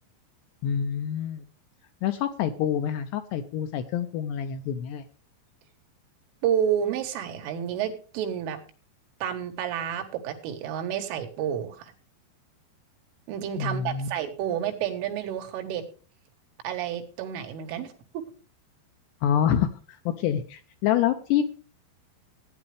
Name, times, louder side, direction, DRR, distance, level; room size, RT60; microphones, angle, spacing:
voice 1, 0.6-1.4 2.0-5.0 13.6-14.1 19.2-21.4, left 9 dB, 80° left, 8 dB, 2.5 m, -27 dB
voice 2, 6.4-8.6 9.2-11.9 13.3-15.8 16.6-18.2, right 9 dB, 85° right, 5 dB, 4.1 m, -30 dB
15.5 x 9.6 x 3.3 m, 0.38 s
omnidirectional pair, 5.5 m